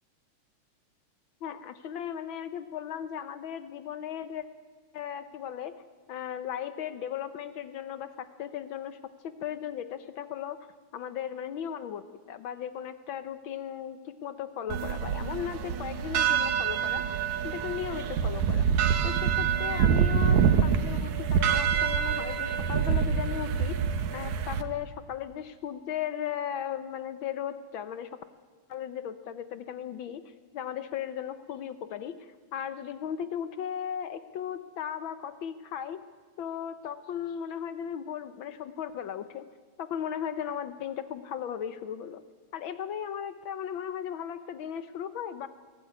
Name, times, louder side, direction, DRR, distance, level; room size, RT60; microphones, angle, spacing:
voice 1, 1.4-4.5 4.9-5.8 6.1-9.0 9.2-10.6 10.9-17.0 17.4-18.7 19.0-23.8 24.1-28.2 28.7-32.2 32.5-36.0 36.4-39.5 39.8-42.2 42.5-45.5, left 9 dB, 85° left, 11 dB, 1.1 m, -36 dB
sound 1, 14.7-24.6, right 7 dB, 75° right, 2.6 m, -26 dB
22.5 x 17.5 x 9.6 m, 1.5 s
omnidirectional pair, 3.4 m